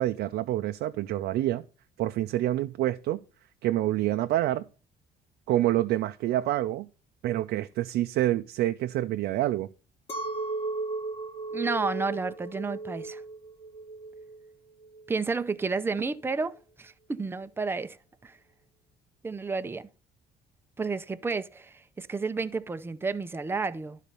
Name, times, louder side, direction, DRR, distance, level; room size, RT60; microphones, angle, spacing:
voice 1, 0.0-1.6 2.0-3.2 3.6-4.6 5.5-6.9 7.2-9.7, right 14 dB, 75° right, 0.5 m, -27 dB
Chink clink, 10.1-15.6, right 3 dB, 35° left, 1.1 m, -36 dB
voice 2, 11.5-13.2 15.1-18.0 18.2-18.4 19.2-19.9 20.8-24.0, right 4 dB, 15° right, 0.5 m, -31 dB
11.5 x 4.1 x 6.8 m
cardioid pair, 110°, 17 cm